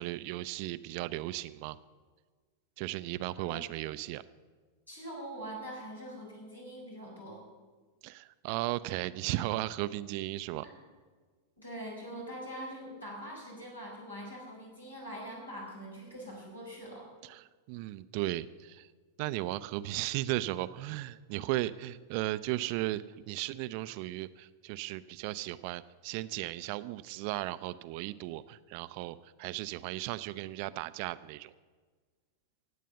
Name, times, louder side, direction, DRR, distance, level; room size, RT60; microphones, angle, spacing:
voice 1, 0.0-1.8 2.8-4.2 8.0-10.7 17.2-18.9 19.2-31.5, right 16 dB, 45° right, 15 dB, 0.5 m, -36 dB
voice 2, 4.9-7.5 10.6-10.8 11.6-17.1, right 1 dB, 80° left, -2 dB, 5.8 m, -43 dB
17.5 x 8.4 x 7.0 m, 1.5 s
figure-of-eight pair, 90°, 0 cm